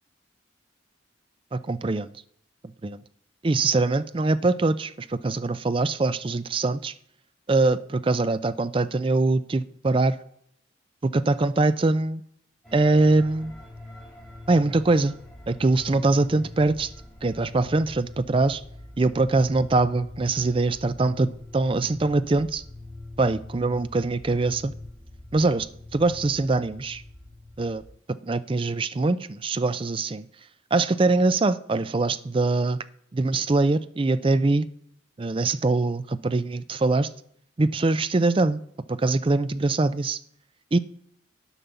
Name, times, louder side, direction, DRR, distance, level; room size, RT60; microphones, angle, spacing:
voice 1, 1.5-2.1 2.6-3.0 3.4-6.9 7.5-10.2 11.0-12.2 12.7-13.5 14.5-15.2 15.5-16.9 17.2-18.6 19.0-22.6 23.2-24.7 25.3-27.0 27.6-27.8 28.1-30.3 30.7-32.8 33.1-34.7 35.2-37.1 37.6-38.6 38.9-40.2 40.7-40.8, right 3 dB, 25° right, 0.4 m, -23 dB
sound 1, 12.6-27.9, left 2 dB, ahead, 3.7 m, -43 dB
11.0 x 5.5 x 7.0 m
head